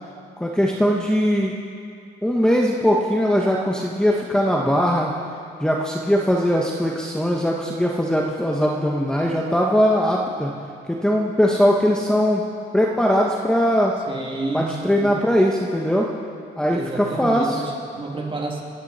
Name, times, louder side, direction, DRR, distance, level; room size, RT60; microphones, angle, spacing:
voice 1, 0.4-1.5 2.2-5.1 5.6-10.5 10.9-12.4 12.7-13.9 14.5-16.1 16.6-17.6, equal, 5° left, -2 dB, 1.4 m, -20 dB
voice 2, 14.1-15.2 16.7-18.6, right 3 dB, 25° right, -1 dB, 2.9 m, -30 dB
28.5 x 9.8 x 4.4 m, 2.4 s
cardioid pair, 90°, 20 cm